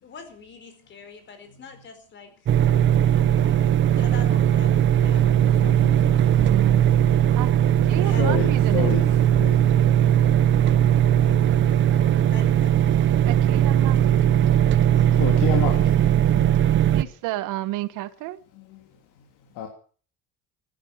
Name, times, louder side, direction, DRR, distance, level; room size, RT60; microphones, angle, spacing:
voice 1, 0.0-2.5 3.1-5.8 7.9-8.5 12.3-12.9 15.0-16.2, left 5 dB, 35° left, 8 dB, 4.6 m, -45 dB
sound 1, 2.5-17.0, right 10 dB, 40° right, 0.8 m, -19 dB
voice 2, 5.6-6.4 7.8-9.1 9.3-9.6 11.3-11.4 15.2-15.9 16.3-16.6 18.6-18.8 19.6-19.7, left 9 dB, 80° left, 2 dB, 3.3 m, -30 dB
voice 3, 6.4-6.9 7.3-7.5 7.9-8.9 13.2-14.2 16.9-18.4, right 16 dB, 80° right, 14 dB, 1.4 m, -31 dB
15.0 x 12.0 x 7.3 m, 0.43 s
cardioid pair, 145°, 31 cm